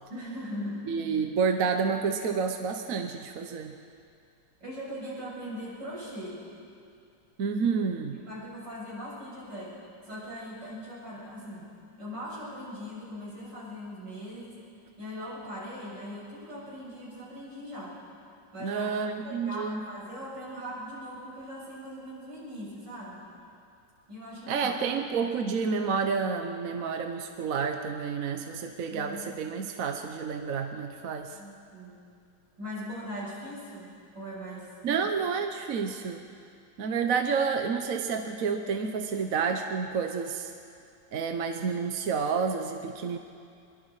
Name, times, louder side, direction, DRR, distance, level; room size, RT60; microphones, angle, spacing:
voice 1, 0.1-0.9 4.6-6.4 8.1-9.8 10.1-11.7 12.0-14.6 15.0-18.0 18.5-18.9 19.2-23.2 24.1-24.7 28.9-29.2 31.3-32.0 32.6-34.7, equal, 70° right, -7 dB, 8.0 m, -40 dB
voice 2, 0.9-3.7 7.4-8.2 18.6-19.8 24.5-31.4 34.8-36.2 36.8-40.5 41.1-43.2, right 5 dB, 55° right, 5 dB, 1.2 m, -29 dB
24.5 x 22.5 x 4.9 m, 2.4 s
omnidirectional pair, 1.9 m